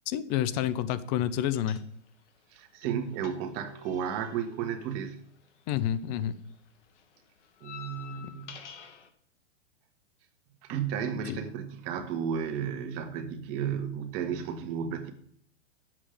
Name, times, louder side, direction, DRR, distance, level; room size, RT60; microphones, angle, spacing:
voice 1, 0.1-1.8 5.7-6.3 11.3-11.4, left 11 dB, 35° left, 15 dB, 0.7 m, -29 dB
sound 1, 1.5-2.3 2.5-5.9 6.2-9.1, left 7 dB, 70° left, 1.8 m, -49 dB
voice 2, 2.5-5.2 7.6-8.6 10.6-15.1, right 8 dB, 35° right, 7 dB, 1.5 m, -33 dB
8.6 x 7.5 x 5.1 m, 0.64 s
hypercardioid pair, 115°, 37 cm